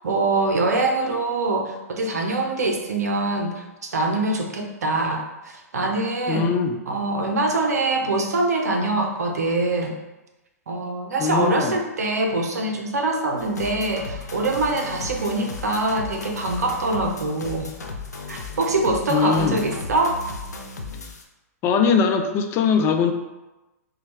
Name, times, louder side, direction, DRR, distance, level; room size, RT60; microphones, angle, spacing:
voice 1, 0.0-6.5 6.9-10.0 10.7-17.7 18.3-20.2, right 2 dB, 75° right, 3 dB, 0.6 m, -24 dB
voice 2, 6.3-6.8 11.2-11.8 19.1-19.6 21.6-23.1, left 6 dB, 30° left, 5 dB, 0.4 m, -21 dB
sound 1, 13.4-21.2, left 3 dB, 90° left, 0.5 m, -36 dB
4.0 x 2.3 x 3.2 m, 1.0 s
hypercardioid pair, 115°, 9 cm